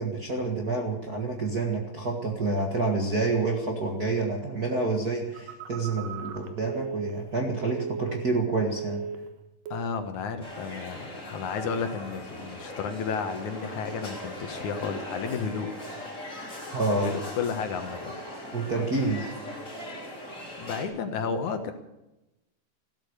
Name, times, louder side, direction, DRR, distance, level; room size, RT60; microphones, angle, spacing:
voice 1, 0.0-9.0 16.7-17.1 18.5-19.3, right 3 dB, 40° right, 0 dB, 1.5 m, -28 dB
Telephone, 5.3-8.4 8.6-9.3 9.7-10.0, right 6 dB, 75° right, 2.9 m, -37 dB
voice 2, 9.7-15.7 16.9-18.1 20.6-21.7, left 5 dB, 65° left, 7 dB, 2.6 m, -32 dB
sound 1, 10.4-20.9, left 1 dB, 20° left, 4.2 m, -39 dB
16.0 x 13.0 x 6.6 m, 0.92 s
omnidirectional pair, 4.0 m